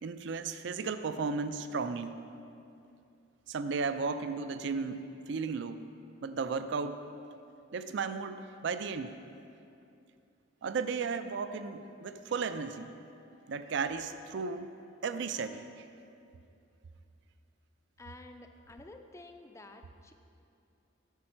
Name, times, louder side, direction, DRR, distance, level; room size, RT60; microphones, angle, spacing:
voice 1, 0.0-2.1 3.5-5.8 6.2-7.0 7.7-9.2 10.6-12.9 13.5-14.7 15.0-15.9, right 5 dB, 60° right, 11 dB, 0.4 m, -35 dB
sound 1, 12.4-15.5, left 3 dB, 80° left, 0.9 m, -56 dB
voice 2, 18.0-20.1, left 2 dB, 15° left, 6 dB, 0.4 m, -51 dB
8.3 x 6.6 x 4.4 m, 2.6 s
head